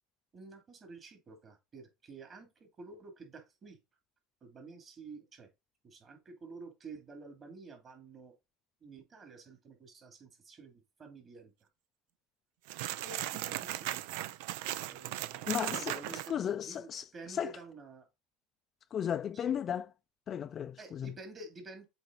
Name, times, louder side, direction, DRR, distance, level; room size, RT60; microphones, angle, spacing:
voice 1, 0.3-3.8 4.4-5.5 5.8-8.3 8.8-11.5 13.0-14.2 14.9-18.1 19.3-19.6 20.8-21.8, right 3 dB, 35° right, 2.6 m, -50 dB
sound 1, 12.7-16.3, right 14 dB, 70° right, 0.4 m, -37 dB
voice 2, 16.3-17.0 17.4-17.5 18.9-19.9 20.3-21.1, left 9 dB, 40° left, 0.4 m, -34 dB
7.9 x 3.1 x 3.9 m
supercardioid pair, 95°, 0 cm